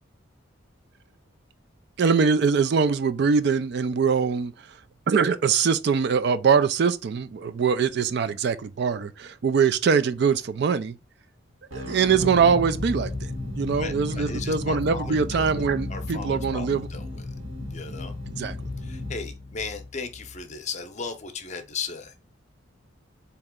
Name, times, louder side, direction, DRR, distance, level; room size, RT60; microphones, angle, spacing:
voice 1, 2.0-4.8 5.1-11.0 11.7-16.9 18.3-18.6, right 6 dB, 55° right, 0.3 m, -23 dB
sound 1, 11.7-20.4, left 2 dB, 90° right, 1.7 m, -34 dB
voice 2, 13.8-15.6 15.9-17.2 17.7-18.2 18.8-22.1, left 4 dB, 35° left, 0.6 m, -36 dB
4.2 x 2.9 x 3.6 m
head